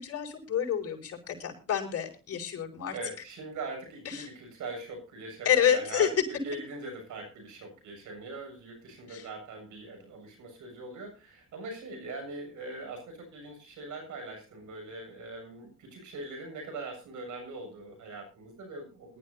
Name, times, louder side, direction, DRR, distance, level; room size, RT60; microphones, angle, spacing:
voice 1, 0.0-2.9 4.1-4.3 5.5-6.1 9.1-9.2, left 9 dB, 55° left, -1 dB, 5.8 m, -28 dB
voice 2, 2.9-19.2, right 2 dB, 75° right, 5 dB, 7.0 m, -41 dB
21.0 x 13.0 x 2.8 m, 0.32 s
cardioid pair, 90°, 30 cm